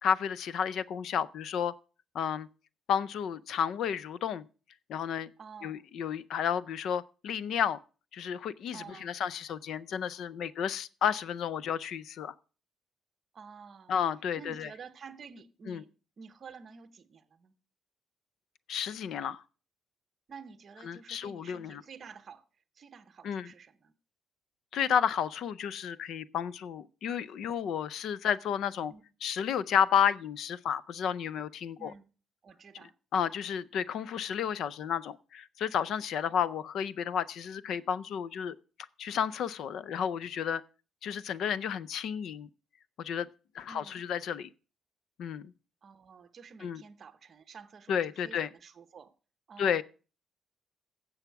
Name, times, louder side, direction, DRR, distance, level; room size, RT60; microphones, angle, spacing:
voice 1, 0.0-1.7 2.1-2.5 2.9-4.5 4.9-5.3 5.6-7.8 8.1-12.3 13.9-14.7 15.7-15.8 18.7-19.4 20.8-21.8 23.2-23.5 24.7-28.9 29.2-31.9 33.1-38.6 39.0-40.6 41.0-42.5 43.0-43.3 43.5-44.5 45.2-45.5 46.6-46.8 47.9-48.5 49.6-49.8, left 8 dB, 60° left, 0.5 m, -31 dB
voice 2, 5.4-5.8 8.7-9.1 13.3-14.0 14.4-15.9 16.2-17.5 20.3-22.5 22.7-23.9 28.9-29.0 31.8-32.1 32.4-32.9 43.7-44.0 45.8-49.1 49.5-49.8, right 6 dB, 35° right, 0.8 m, -50 dB
16.0 x 7.1 x 4.6 m
cardioid pair, 175°, 0 cm